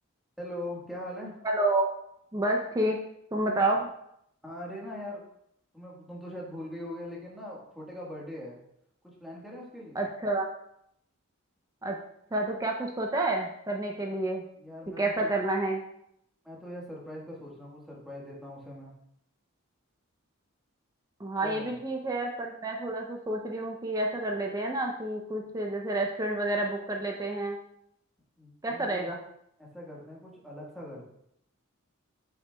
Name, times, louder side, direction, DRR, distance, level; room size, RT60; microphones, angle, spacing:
voice 1, 0.4-1.4 4.4-5.2 5.7-8.6 9.2-10.0 14.6-15.4 16.4-18.9 21.4-21.8 28.4-29.1 29.6-31.1, left 1 dB, ahead, -4 dB, 1.4 m, -41 dB
voice 2, 1.4-1.9 2.3-3.0 3.3-3.9 9.9-10.5 11.8-12.0 12.3-14.4 15.0-15.8 21.2-27.6 28.6-29.2, right 2 dB, 15° right, 1 dB, 0.5 m, -29 dB
9.3 x 5.8 x 2.2 m, 0.75 s
head